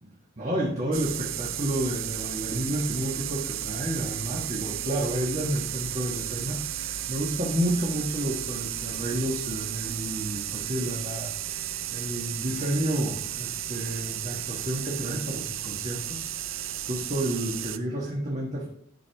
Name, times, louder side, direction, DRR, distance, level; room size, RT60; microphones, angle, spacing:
voice 1, 0.4-11.6 11.9-18.7, right 1 dB, 35° right, -4 dB, 1.4 m, -30 dB
sound 1, 0.9-17.8, right 12 dB, 65° right, 0.5 m, -34 dB
11.0 x 6.2 x 3.5 m, 0.67 s
head